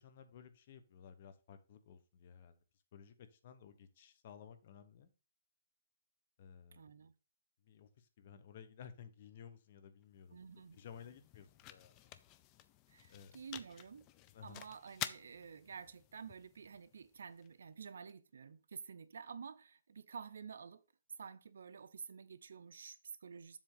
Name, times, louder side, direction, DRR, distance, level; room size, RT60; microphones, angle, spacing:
voice 1, 0.0-2.6 2.9-5.1 6.4-6.9 7.6-10.4 10.7-12.2 13.1-13.3 14.3-14.6, left 8 dB, 40° left, 1.0 m, -56 dB
voice 2, 6.7-7.1 10.3-10.8 12.9-14.1 14.4-20.8 21.2-23.6, right 6 dB, 75° right, 0.7 m, -50 dB
sound 1, 10.0-18.1, left 13 dB, 25° left, 0.5 m, -51 dB
7.4 x 3.6 x 6.5 m
hypercardioid pair, 160°, 0 cm